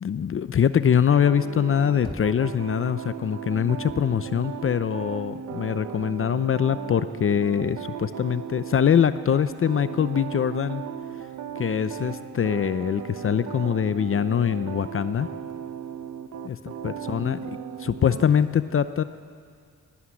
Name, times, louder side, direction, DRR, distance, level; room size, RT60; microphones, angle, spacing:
voice 1, 0.0-10.8 11.6-15.3 16.4-16.6 16.8-17.4 17.8-19.0, left 8 dB, 45° left, 12 dB, 0.7 m, -23 dB
sound 1, 1.2-18.3, right 8 dB, 75° right, 1.1 m, -36 dB
Knock, 2.0-3.0, left 1 dB, 20° left, 2.5 m, -40 dB
18.0 x 18.0 x 9.8 m, 2.2 s
cardioid pair, 80°, 30 cm